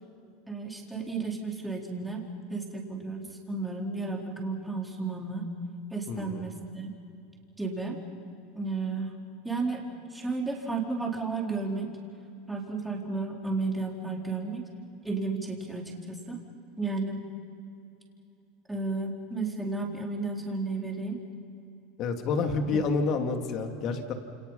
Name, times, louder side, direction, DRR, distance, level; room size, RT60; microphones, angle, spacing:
voice 1, 0.5-2.2 2.5-5.4 5.9-6.9 7.6-8.0 8.5-9.1 9.4-9.8 10.1-11.9 12.5-14.6 15.0-16.4 16.8-17.2 18.7-21.2 22.7-22.8, right 3 dB, 5° right, -1 dB, 4.2 m, -33 dB
voice 2, 6.1-6.4 22.0-24.1, left 4 dB, 45° left, 4 dB, 3.0 m, -29 dB
28.5 x 28.5 x 5.8 m, 2.7 s
supercardioid pair, 130°, 0 cm